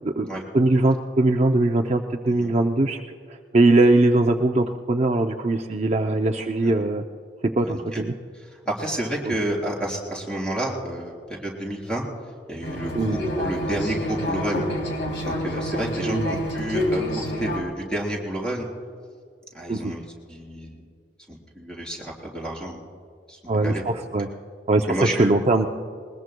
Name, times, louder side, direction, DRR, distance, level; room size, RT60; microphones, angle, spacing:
voice 1, 0.5-3.0 3.5-7.0 7.6-8.1 9.2-9.3 12.9-13.2 16.1-16.3 19.7-19.9 23.5-24.3 24.7-25.7, right 2 dB, 40° right, 3 dB, 0.6 m, -21 dB
voice 2, 7.6-8.0 8.7-12.1 12.5-14.7 15.2-18.7 19.5-20.7 21.3-22.8 23.3-23.8 24.9-25.3, right 1 dB, 5° left, -2 dB, 3.9 m, -30 dB
sound 1, 12.6-17.6, left 1 dB, 75° left, 3.1 m, -28 dB
21.5 x 20.5 x 2.3 m, 2.2 s
head